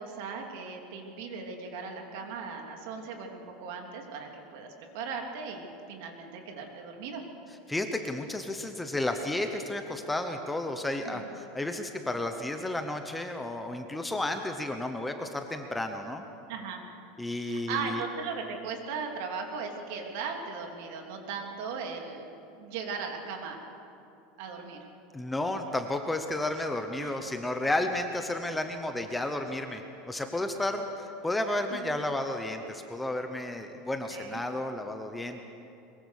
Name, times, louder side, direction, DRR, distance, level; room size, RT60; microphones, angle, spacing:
voice 1, 0.0-7.2 11.0-11.2 16.5-16.8 17.4-22.3 22.6-23.6 24.4-24.8 27.0-27.1 31.7-31.9 34.1-34.4, right 5 dB, 55° right, 2 dB, 3.0 m, -38 dB
voice 2, 7.7-16.3 17.2-18.0 25.1-35.5, left 1 dB, 5° left, 5 dB, 0.8 m, -32 dB
22.5 x 22.0 x 6.5 m, 2.8 s
supercardioid pair, 180°, 0 cm